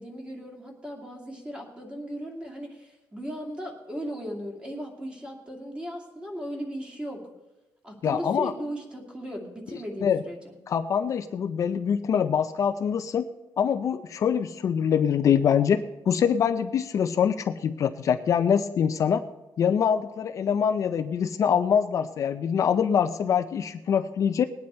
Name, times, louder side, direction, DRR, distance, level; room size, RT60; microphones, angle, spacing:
voice 1, 0.0-7.2 7.8-10.6, equal, 15° right, 1 dB, 2.3 m, -37 dB
voice 2, 8.0-8.5 10.0-10.2 10.7-13.2 13.6-19.2 19.6-24.5, left 7 dB, 45° left, 9 dB, 0.5 m, -24 dB
20.0 x 9.4 x 4.3 m, 0.99 s
cardioid pair, 170°, 7 cm